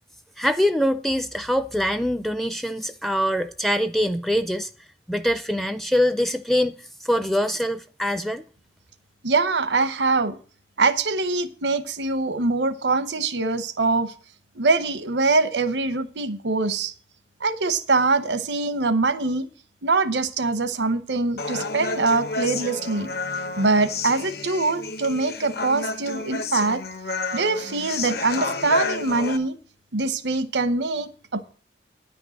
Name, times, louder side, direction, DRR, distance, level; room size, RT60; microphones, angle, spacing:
voice 1, 0.4-4.7 5.1-8.4, equal, ahead, 0.4 m, -24 dB
voice 2, 9.2-10.4 10.8-14.1 14.5-16.9 17.4-19.5 19.8-23.1 23.6-26.8 27.3-29.6 29.9-31.5, right 3 dB, 85° right, 0.9 m, -23 dB
Human voice, 21.4-29.4, left 3 dB, 60° left, 1.0 m, -30 dB
10.5 x 5.3 x 7.6 m
head